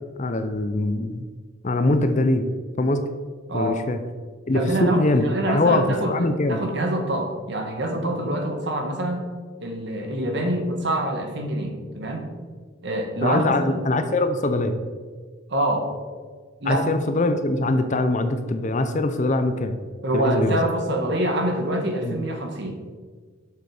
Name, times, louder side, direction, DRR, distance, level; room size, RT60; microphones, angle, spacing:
voice 1, 0.2-1.3 1.6-2.4 2.8-3.1 3.5-4.0 4.5-6.6 13.2-14.7 16.7-19.8 20.1-20.6 22.0-22.2, left 2 dB, 35° left, 8 dB, 0.5 m, -22 dB
voice 2, 4.5-9.2 9.6-12.3 12.8-13.5 15.5-15.9 16.6-16.9 20.0-22.8, right 1 dB, 55° right, 3 dB, 1.4 m, -25 dB
7.1 x 6.5 x 4.8 m, 1.5 s
head